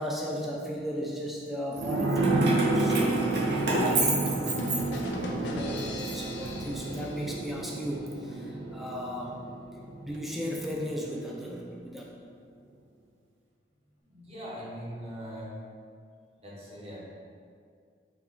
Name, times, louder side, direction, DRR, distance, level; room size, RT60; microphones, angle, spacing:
voice 1, 0.0-9.4 10.0-12.0, equal, ahead, -3 dB, 0.3 m, -36 dB
sound 1, 1.8-11.0 11.3-11.4, right 2 dB, 85° right, 0.4 m, -30 dB
Keys jangling, 2.2-5.3 5.8-7.0, right 2 dB, 65° right, 0.8 m, -31 dB
sound 2, 4.3-8.0, left 1 dB, 70° left, 0.5 m, -39 dB
voice 2, 14.0-15.6 16.4-17.0, equal, 35° right, -6 dB, 0.9 m, -41 dB
4.4 x 2.3 x 3.8 m, 2.2 s
head